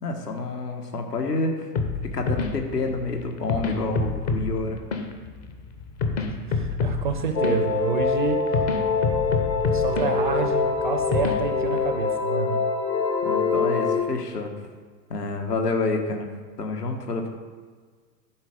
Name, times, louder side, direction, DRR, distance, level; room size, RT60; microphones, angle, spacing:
voice 1, 0.0-1.5 2.1-4.8 13.2-14.5 15.1-16.3 16.6-17.3, left 3 dB, 70° left, 3 dB, 1.5 m, -28 dB
sound 1, 1.7-11.8, left 4 dB, 25° left, 0.7 m, -29 dB
voice 2, 6.3-8.6 9.1-12.7, right 6 dB, 35° right, 7 dB, 0.4 m, -29 dB
sound 2, 7.3-14.0, left 4 dB, 85° left, 1.0 m, -24 dB
12.0 x 4.6 x 5.3 m, 1.5 s
figure-of-eight pair, 105°, 50 cm